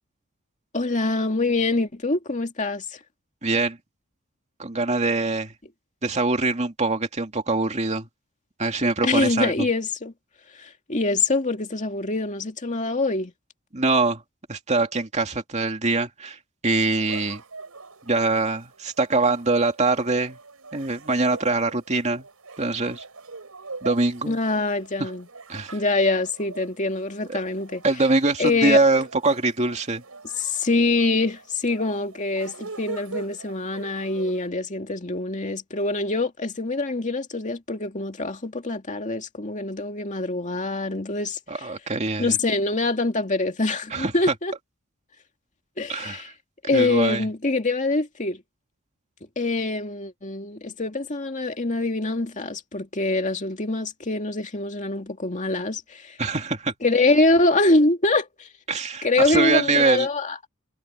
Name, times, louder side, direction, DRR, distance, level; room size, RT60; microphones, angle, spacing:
voice 1, 0.7-3.0 9.0-10.1 10.6-13.3 24.3-25.3 25.7-27.8 28.4-28.8 30.4-41.4 42.2-44.5 45.8-46.3 46.6-48.4 49.4-56.2 56.8-58.5 59.0-60.4, left 2 dB, 35° left, 2.3 m, -24 dB
voice 2, 3.4-3.8 4.6-5.5 6.0-8.1 8.6-9.5 13.7-14.2 14.5-16.4 16.6-17.4 18.1-20.4 20.7-22.2 22.6-23.0 23.8-24.4 25.0-25.1 25.5-25.7 27.3-27.4 27.8-30.0 41.5-42.4 43.9-44.1 45.9-46.2 46.7-47.2 56.2-56.7 58.7-60.1, right 3 dB, 30° right, 2.4 m, -23 dB
sound 1, 16.8-34.5, right 3 dB, 85° right, 4.7 m, -42 dB
head